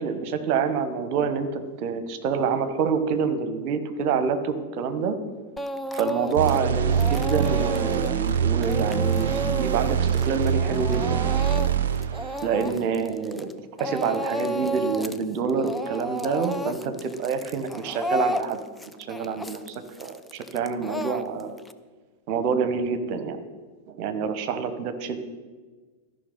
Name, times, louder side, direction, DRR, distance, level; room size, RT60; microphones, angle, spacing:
voice 1, 0.0-5.2 5.9-11.6 12.4-13.5 13.8-18.6 19.0-21.5 22.3-23.4 23.9-25.2, right 6 dB, 45° right, 10 dB, 1.0 m, -27 dB
Speech / Crying sobbing, 5.6-6.6 6.9-13.5 13.8-15.2 15.5-21.7, equal, 5° left, 0.4 m, -32 dB
sound 1, 6.4-12.8, right 8 dB, 60° right, 0.5 m, -25 dB
13.5 x 5.6 x 5.2 m, 1.4 s
figure-of-eight pair, 90°, 0 cm